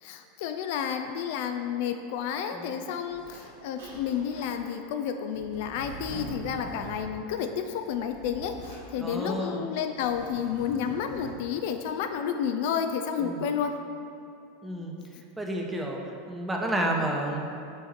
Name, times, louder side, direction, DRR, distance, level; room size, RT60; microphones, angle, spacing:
voice 1, 0.0-13.7, left 8 dB, 60° left, 6 dB, 0.3 m, -31 dB
Zipper (clothing), 2.2-2.3 3.1-3.5 3.8-4.6 5.3-7.0 7.7-8.8 9.8-11.3, right 2 dB, 70° right, 1.4 m, -43 dB
voice 2, 9.0-9.6 13.2-13.4 14.6-14.9 15.4-16.0 16.3-17.4, right 1 dB, 10° right, 0 dB, 0.9 m, -30 dB
5.5 x 4.9 x 4.1 m, 2.7 s
figure-of-eight pair, 85°, 0 cm